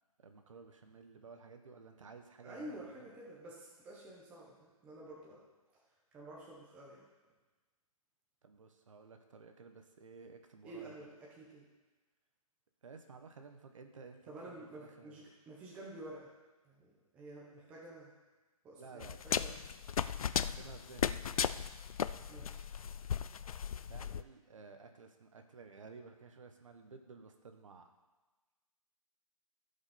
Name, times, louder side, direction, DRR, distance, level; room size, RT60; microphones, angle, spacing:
voice 1, 0.2-3.1 8.4-11.1 12.8-15.2 18.7-19.4 20.5-21.7 22.1-22.6 23.9-27.9, right 4 dB, 55° right, 6 dB, 1.2 m, -54 dB
voice 2, 2.4-5.4 6.1-7.0 10.6-11.6 14.3-16.3 16.6-18.1 18.6-19.6 22.3-22.6, right 1 dB, 5° right, -4 dB, 0.7 m, -50 dB
sound 1, 19.0-24.2, left 8 dB, 65° left, 0.4 m, -36 dB
15.5 x 5.4 x 4.2 m, 1.2 s
hypercardioid pair, 170°, 19 cm